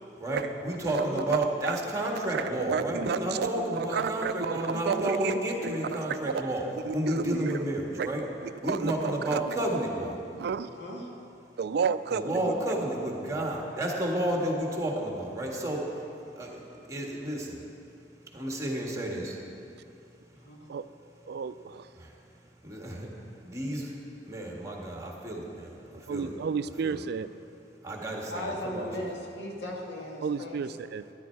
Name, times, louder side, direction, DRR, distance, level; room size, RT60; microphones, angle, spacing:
voice 1, 0.2-8.2 8.6-10.2 12.1-17.6 18.3-19.4 22.0-22.1 22.6-23.1 23.4-23.9 24.2-26.3 26.8-27.0 27.8-28.9, right 1 dB, 20° right, -1 dB, 1.7 m, -31 dB
voice 2, 0.8-1.5 9.1-9.2 10.6-11.1 12.4-12.5 20.4-20.7 26.6-26.7 28.3-30.6, left 1 dB, 90° left, -1 dB, 2.0 m, -38 dB
voice 3, 2.7-5.8 6.2-6.4 6.9-7.5 8.0-8.1 8.7-8.9 9.3-9.4 10.3-10.7 11.6-12.5 20.7-20.9 21.3-21.8 26.1-27.3 30.2-31.0, right 6 dB, 65° right, 13 dB, 0.3 m, -31 dB
12.5 x 11.0 x 4.6 m, 2.6 s
head